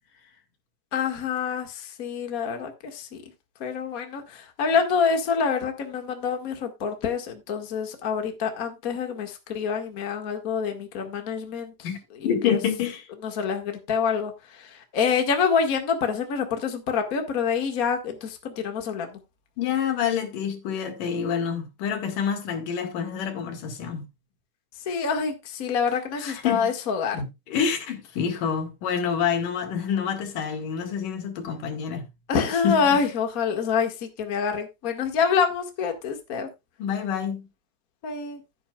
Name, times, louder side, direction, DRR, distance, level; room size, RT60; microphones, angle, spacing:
voice 1, 0.9-3.2 3.6-12.6 13.2-19.2 24.8-27.2 32.3-36.5 38.0-38.4, left 6 dB, 35° left, 1.7 m, -26 dB
voice 2, 12.2-13.1 19.6-24.0 26.2-26.7 27.1-32.0 32.6-33.0 36.8-37.5, left 7 dB, 90° left, 3.6 m, -27 dB
15.5 x 8.7 x 2.3 m
omnidirectional pair, 3.7 m